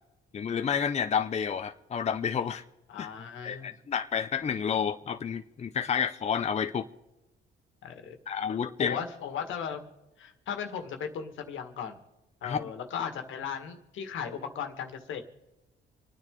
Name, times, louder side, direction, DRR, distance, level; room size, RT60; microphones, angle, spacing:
voice 1, 0.3-2.6 3.0-3.1 3.4-6.9 8.3-9.0 12.4-12.7, left 7 dB, 35° left, 8 dB, 0.6 m, -30 dB
voice 2, 2.9-3.7 7.8-8.4 8.8-9.9 10.2-12.0 12.4-15.2, left 7 dB, 80° left, 6 dB, 1.8 m, -37 dB
26.5 x 9.7 x 3.8 m, 1.0 s
cardioid pair, 90°, 20 cm